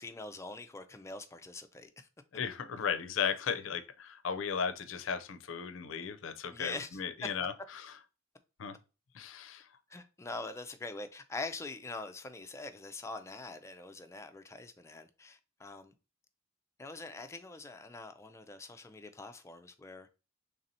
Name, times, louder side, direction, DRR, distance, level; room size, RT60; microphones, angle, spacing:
voice 1, 0.0-2.1 6.5-7.0 9.9-15.9 16.8-20.1, left 3 dB, 15° left, 0.4 m, -44 dB
voice 2, 2.3-7.9 8.6-8.8 9.1-9.7, left 6 dB, 75° left, 0.5 m, -36 dB
3.3 x 2.7 x 4.1 m
head